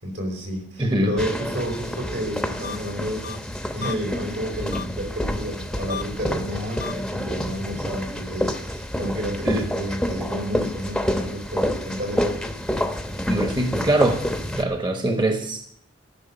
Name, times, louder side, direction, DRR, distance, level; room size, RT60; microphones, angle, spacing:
voice 1, 0.0-3.5 3.7-12.5, equal, 75° right, 2 dB, 4.5 m, -31 dB
voice 2, 0.8-1.1 9.4-9.6 13.3-14.2 14.6-15.7, right 1 dB, 25° right, 4 dB, 1.2 m, -22 dB
sound 1, 1.2-14.6, equal, 5° left, 0.9 m, -28 dB
sound 2, 2.6-2.8 3.2-3.4 3.8-3.9 4.7-4.8 5.9-6.0 6.8-6.9, left 8 dB, 55° left, 0.5 m, -32 dB
13.5 x 6.3 x 10.0 m, 0.66 s
head